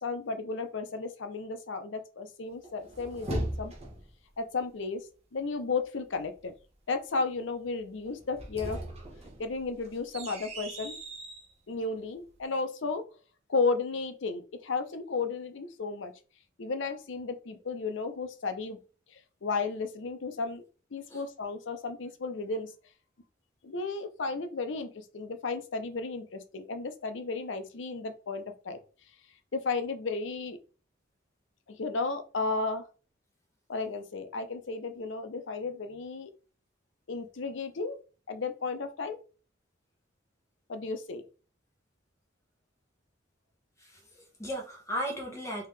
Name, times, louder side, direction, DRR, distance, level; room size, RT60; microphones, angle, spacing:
voice 1, 0.0-3.7 4.4-5.0 5.3-6.5 6.9-8.8 9.4-11.0 11.7-13.0 13.5-16.1 16.6-18.8 19.1-20.6 20.9-22.7 23.6-28.8 29.5-30.6 31.7-32.9 33.7-36.3 37.1-38.0 38.3-39.2 40.7-41.2, left 4 dB, 70° left, 8 dB, 0.6 m, -33 dB
sound 1, 2.6-4.1 8.2-11.5, right 1 dB, 35° right, 0.9 m, -38 dB
voice 2, 43.8-45.7, equal, 15° left, -1 dB, 1.1 m, -36 dB
3.5 x 2.8 x 3.2 m, 0.35 s
head